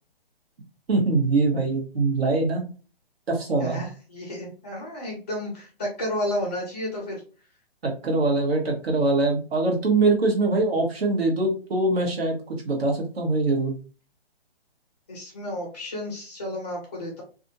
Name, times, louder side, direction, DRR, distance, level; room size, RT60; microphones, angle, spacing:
voice 1, 0.9-2.6 3.3-3.8 7.8-13.7, right 3 dB, 75° right, 1 dB, 1.3 m, -23 dB
voice 2, 3.6-7.2 15.1-17.2, left 1 dB, 15° left, -1 dB, 0.5 m, -32 dB
2.7 x 2.5 x 2.6 m, 0.36 s
hypercardioid pair, 170°, 31 cm